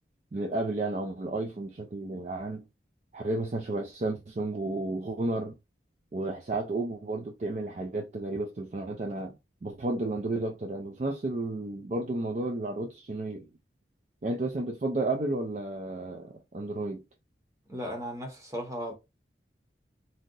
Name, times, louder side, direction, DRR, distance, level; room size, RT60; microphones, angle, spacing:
voice 1, 0.3-2.7 3.1-5.6 6.1-9.3 9.6-13.5 14.2-17.0, right 2 dB, 40° right, 0.4 m, -32 dB
voice 2, 17.7-18.9, equal, 20° right, 0.8 m, -36 dB
2.6 x 2.0 x 3.7 m
head